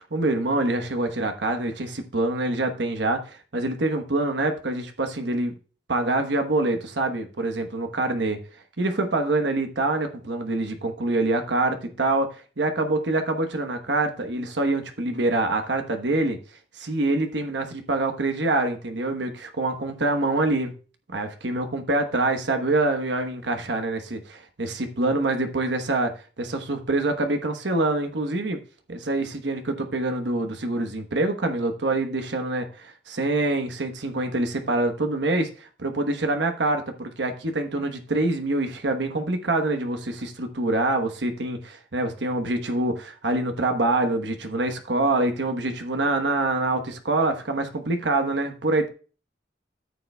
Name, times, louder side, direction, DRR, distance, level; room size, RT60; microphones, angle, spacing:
voice 1, 0.1-5.5 5.9-8.4 8.8-16.4 16.8-20.7 21.1-26.1 26.4-28.6 28.9-48.9, right 2 dB, 80° right, 6 dB, 1.1 m, -25 dB
14.0 x 6.7 x 2.3 m, 0.36 s
head